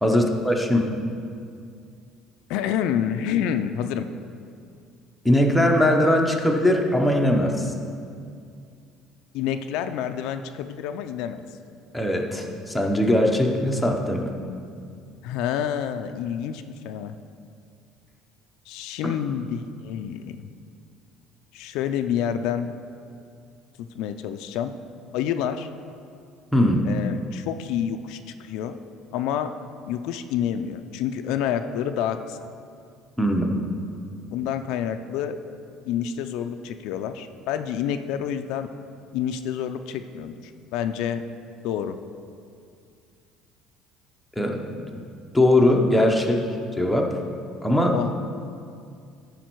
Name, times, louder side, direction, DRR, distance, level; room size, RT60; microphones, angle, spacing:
voice 1, 0.0-0.9 5.2-7.7 11.9-14.3 26.5-26.9 33.2-33.6 44.4-45.0 45.3-46.5 46.8-47.2 47.6-48.0, left 1 dB, ahead, 1 dB, 0.7 m, -20 dB
voice 2, 2.5-4.1 9.3-11.4 15.2-17.1 18.7-20.4 21.5-22.7 23.8-24.8 25.1-25.7 26.8-28.8 29.1-29.5 29.9-32.5 34.3-35.4 35.9-38.7 39.1-41.2 41.6-42.0 47.9-48.1, left 9 dB, 70° left, 8 dB, 0.4 m, -28 dB
14.0 x 5.1 x 4.5 m, 2.3 s
cardioid pair, 165°, 0 cm